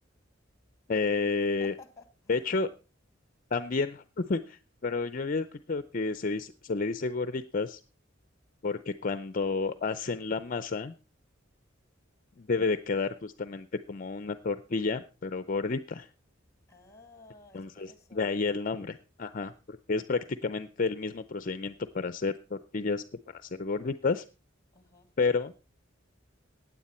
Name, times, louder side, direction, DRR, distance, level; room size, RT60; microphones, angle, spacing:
voice 1, 0.9-1.7 2.3-2.7 3.5-7.8 8.6-10.9 12.4-16.1 17.5-24.2 25.2-25.5, left 4 dB, 45° left, 0.5 m, -31 dB
voice 2, 1.6-2.5 16.7-18.3 24.7-25.1, left 3 dB, 15° left, 2.0 m, -54 dB
16.0 x 9.4 x 4.3 m
head